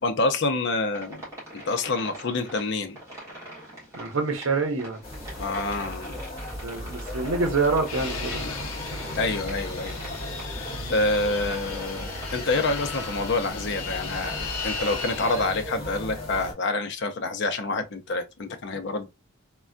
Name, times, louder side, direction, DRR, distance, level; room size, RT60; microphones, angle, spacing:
voice 1, 0.0-1.2 1.5-3.0 5.4-6.2 8.8-10.0 10.4-19.1, left 3 dB, 55° left, 0.5 m, -27 dB
sound 1, 0.9-13.2, right 1 dB, 15° right, 1.4 m, -44 dB
voice 2, 3.9-5.0 6.6-8.5 10.7-10.9, right 3 dB, 70° right, 0.8 m, -26 dB
sound 2, 5.0-16.5, equal, 25° left, 1.5 m, -37 dB
Fixed-wing aircraft airplane, 7.8-15.7, left 4 dB, 80° left, 0.8 m, -36 dB
3.3 x 2.2 x 2.5 m
head